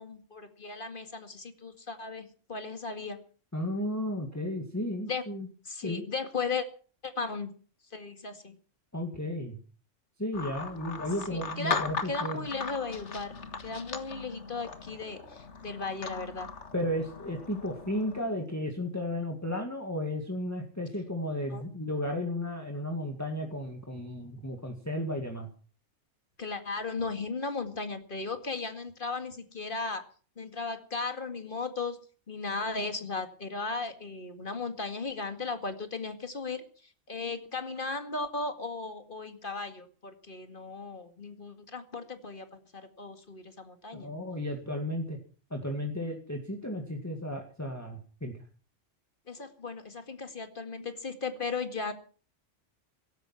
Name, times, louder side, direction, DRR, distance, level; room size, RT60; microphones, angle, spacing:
voice 1, 0.0-3.2 5.1-5.2 5.7-6.7 7.0-7.5 7.9-8.6 11.3-13.3 13.6-16.5 21.5-21.6 26.4-30.0 30.4-32.0 32.3-36.6 37.1-44.1 49.3-51.9, left 4 dB, 40° left, 8 dB, 2.2 m, -36 dB
voice 2, 3.5-5.5 5.8-6.1 8.9-9.6 10.2-12.5 16.7-25.5 43.9-45.2 45.5-48.4, left 1 dB, 15° left, 2 dB, 2.1 m, -34 dB
sound 1, 10.3-18.2, left 5 dB, 65° left, 1.9 m, -38 dB
16.5 x 13.5 x 5.8 m, 0.41 s
omnidirectional pair, 1.3 m